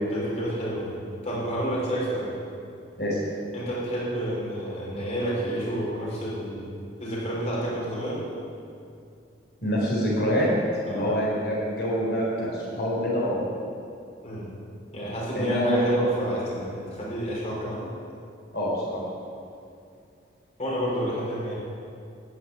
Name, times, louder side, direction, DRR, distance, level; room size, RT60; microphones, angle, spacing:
voice 1, 0.1-0.9 1.2-2.3 3.5-6.6 7.0-8.2 10.9-11.1 14.2-14.5 14.9-17.8 20.6-21.5, equal, 35° left, -5 dB, 4.5 m, -29 dB
voice 2, 9.6-10.5 10.7-13.4 15.3-15.9 18.5-19.0, equal, 55° left, -6 dB, 4.4 m, -26 dB
11.5 x 9.4 x 9.5 m, 2.5 s
head